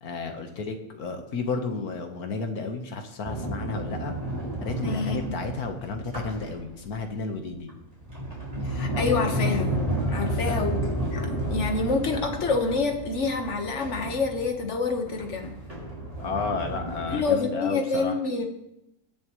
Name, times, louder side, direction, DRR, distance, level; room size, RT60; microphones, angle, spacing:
voice 1, 0.0-4.2 4.6-7.7 10.2-10.7 16.2-18.1, left 4 dB, 65° left, 5 dB, 1.7 m, -32 dB
Sliding door, 3.2-7.0 7.7-17.2, right 1 dB, 25° right, 3.8 m, -31 dB
voice 2, 4.8-5.4 8.6-9.7 10.1-15.5 17.1-18.4, left 4 dB, 45° left, 4 dB, 1.6 m, -27 dB
21.5 x 7.2 x 3.1 m, 0.86 s
omnidirectional pair, 1.8 m